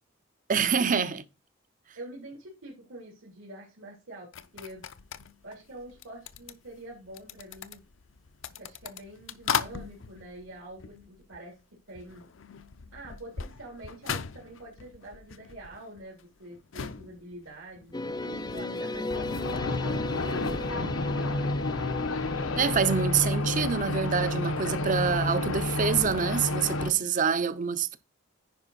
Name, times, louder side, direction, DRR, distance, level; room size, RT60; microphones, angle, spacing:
voice 1, 0.5-1.2 22.6-28.0, right 6 dB, 40° right, 0.7 m, -26 dB
voice 2, 1.9-4.8 5.4-7.8 8.6-11.5 11.9-12.3 12.9-21.0 26.9-27.2, right 1 dB, 80° right, 3.4 m, -46 dB
sound 1, 4.3-11.6 11.9-20.7, left 7 dB, 65° left, 0.6 m, -40 dB
sound 2, 17.9-23.0, left 2 dB, 20° left, 0.6 m, -36 dB
sound 3, 19.1-26.9, left 2 dB, 85° left, 1.0 m, -30 dB
10.5 x 5.0 x 4.1 m
head